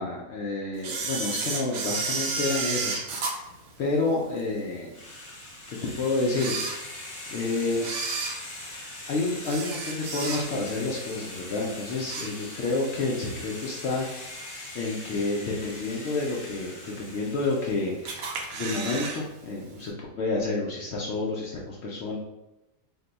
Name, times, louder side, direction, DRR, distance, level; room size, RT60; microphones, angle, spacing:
voice 1, 0.0-3.4 3.8-4.9 5.7-6.9 7.3-7.9 9.1-22.2, left 3 dB, 75° left, -3 dB, 0.6 m, -29 dB
Camera, 0.8-4.4 4.9-5.0 5.7-5.8 6.3-7.3 7.8-10.8 11.1-11.4 11.8-12.8 13.2-13.3 14.2-14.3 14.9-15.3 15.7-15.8 16.0-16.1 16.2-16.3 17.1-17.6 18.1-19.2 19.5-19.6 19.8-19.9, right 4 dB, 75° right, 1.0 m, -32 dB
sound 1, 4.9-18.0, left 2 dB, 55° left, 1.0 m, -41 dB
2.7 x 2.2 x 3.8 m, 0.97 s
omnidirectional pair, 1.7 m